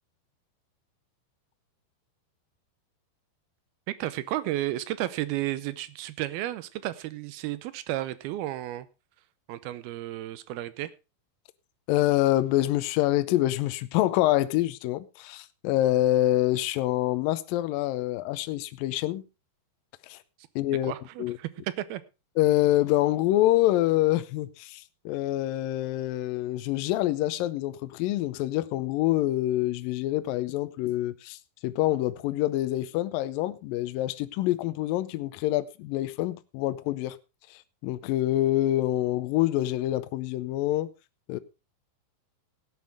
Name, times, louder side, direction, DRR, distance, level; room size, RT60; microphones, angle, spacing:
voice 1, 3.9-8.9 9.5-10.9 20.8-22.0, right 14 dB, 75° right, 2.6 m, -33 dB
voice 2, 11.9-19.2 20.1-20.2 20.6-20.9 21.2-21.4 22.4-37.2 37.5-40.9 41.3-41.4, left 15 dB, 80° left, 2.1 m, -26 dB
17.0 x 9.5 x 3.4 m
omnidirectional pair, 4.7 m